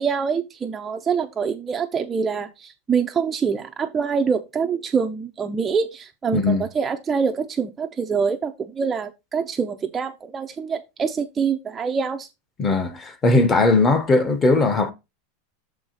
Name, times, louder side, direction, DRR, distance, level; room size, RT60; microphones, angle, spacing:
voice 1, 0.0-12.3, right 6 dB, 15° right, 0.4 m, -25 dB
voice 2, 6.3-6.6 12.6-14.9, left 3 dB, 15° left, 0.8 m, -19 dB
7.0 x 4.7 x 4.0 m
supercardioid pair, 170°, 0 cm